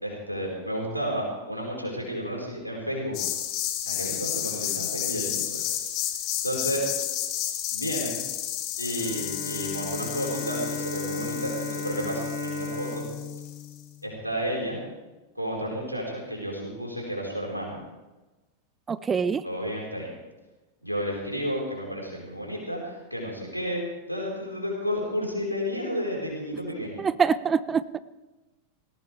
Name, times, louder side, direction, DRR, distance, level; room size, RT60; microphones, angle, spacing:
voice 1, 0.0-3.2 3.8-5.8 6.4-6.8 7.7-8.2 8.8-13.1 14.0-14.8 15.3-17.8 19.4-20.1 20.8-27.0, equal, 90° left, -2 dB, 4.7 m, -32 dB
sound 1, 3.1-13.7, left 12 dB, 40° left, 1.5 m, -32 dB
Bowed string instrument, 8.9-14.6, left 3 dB, 75° right, 5.3 m, -35 dB
voice 2, 18.9-19.4 27.0-28.0, right 6 dB, 20° right, 17 dB, 0.5 m, -25 dB
18.5 x 18.0 x 3.5 m, 1.1 s
figure-of-eight pair, 90°, 0 cm